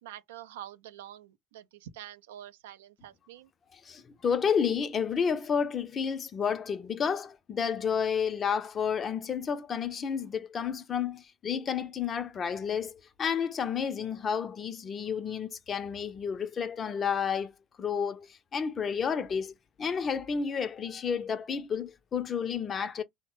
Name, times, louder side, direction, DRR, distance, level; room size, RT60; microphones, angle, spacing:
voice 1, 0.0-3.5, right 11 dB, 85° right, 0.4 m, -46 dB
voice 2, 3.7-17.5 17.8-23.0, left 7 dB, 35° left, 0.5 m, -31 dB
3.1 x 2.1 x 3.1 m
hypercardioid pair, 80°, 0 cm